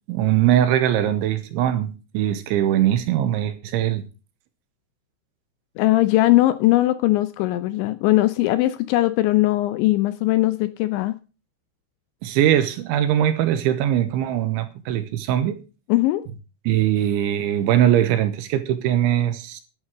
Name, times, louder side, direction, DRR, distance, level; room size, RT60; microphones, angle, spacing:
voice 1, 0.1-4.0 12.2-15.6 16.7-19.6, right 11 dB, 80° right, 3.4 m, -21 dB
voice 2, 5.8-11.1 15.9-16.2, left 17 dB, 80° left, 2.9 m, -19 dB
11.5 x 9.2 x 6.3 m
omnidirectional pair, 5.5 m